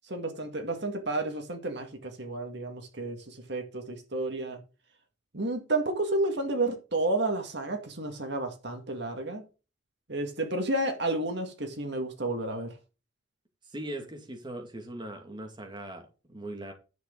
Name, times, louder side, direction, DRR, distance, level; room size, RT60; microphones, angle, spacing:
voice 1, 0.0-4.6 5.3-9.4 10.1-12.8, right 2 dB, 60° right, 2.1 m, -31 dB
voice 2, 13.7-16.7, right 1 dB, 25° right, 2.2 m, -40 dB
10.5 x 7.9 x 3.9 m
head